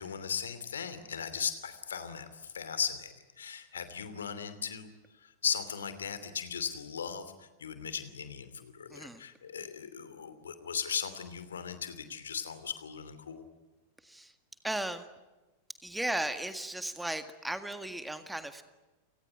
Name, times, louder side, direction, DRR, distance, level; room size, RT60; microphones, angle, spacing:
voice 1, 0.0-4.9 5.2-7.3 7.6-13.4, left 7 dB, 70° left, 12 dB, 2.9 m, -37 dB
voice 2, 8.9-9.2 14.0-14.3 14.6-15.1 15.8-18.6, right 1 dB, 5° right, 10 dB, 1.8 m, -36 dB
29.0 x 19.5 x 9.5 m, 1.1 s
figure-of-eight pair, 90°, 0 cm